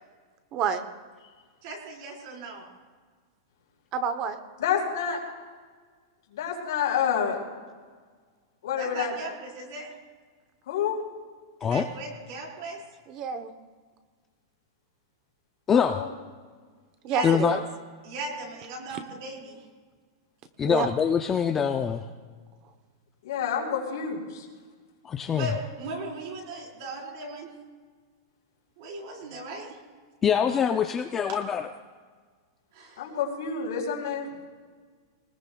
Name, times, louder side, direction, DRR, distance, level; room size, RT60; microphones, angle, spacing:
voice 1, 0.5-0.8 3.9-4.4 13.1-13.5 17.0-17.6 20.6-20.9, right 6 dB, 25° right, 9 dB, 0.8 m, -28 dB
voice 2, 1.6-2.6 8.8-9.9 11.6-12.8 17.0-17.4 18.0-19.6 25.3-27.5 28.8-29.8 32.7-33.1, right 2 dB, 45° right, -1 dB, 4.1 m, -37 dB
voice 3, 4.6-5.2 6.3-7.4 8.6-9.1 10.7-11.0 15.7-16.1 23.2-24.5 33.0-34.4, left 7 dB, 70° left, -1 dB, 4.1 m, -28 dB
voice 4, 15.7-16.0 17.2-17.6 20.6-22.0 25.0-25.5 30.2-31.7, left 7 dB, 15° left, 6 dB, 0.4 m, -24 dB
22.0 x 20.0 x 2.3 m, 1.5 s
supercardioid pair, 175°, 2 cm